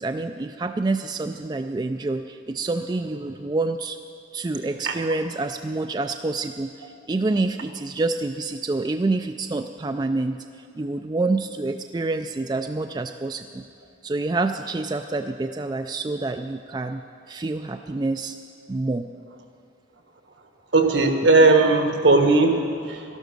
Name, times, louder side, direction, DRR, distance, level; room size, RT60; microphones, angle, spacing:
voice 1, 0.0-4.0 4.3-10.4 10.7-13.6 14.0-18.4 18.7-19.1, right 2 dB, 20° right, 7 dB, 0.3 m, -27 dB
voice 2, 20.7-23.0, right 3 dB, 75° right, 5 dB, 1.4 m, -18 dB
13.5 x 11.5 x 6.3 m, 2.4 s
head